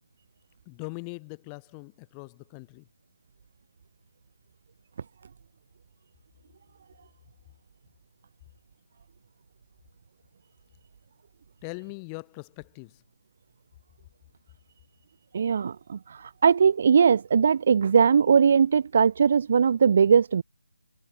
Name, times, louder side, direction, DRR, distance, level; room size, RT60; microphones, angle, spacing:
voice 1, 0.6-2.9 11.6-13.0, left 36 dB, 15° left, 1.5 m, -41 dB
voice 2, 15.3-16.0 16.4-20.4, right 6 dB, 45° right, 0.5 m, -20 dB
figure-of-eight pair, 155°, 0 cm